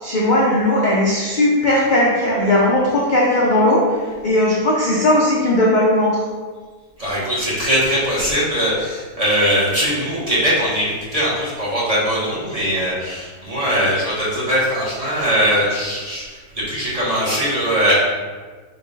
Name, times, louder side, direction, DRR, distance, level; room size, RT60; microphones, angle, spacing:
voice 1, 0.0-6.3, left 1 dB, 65° left, -5 dB, 0.4 m, -17 dB
voice 2, 7.0-16.3 16.5-17.9, equal, 30° right, -9 dB, 0.8 m, -20 dB
4.0 x 2.2 x 3.7 m, 1.4 s
omnidirectional pair, 1.6 m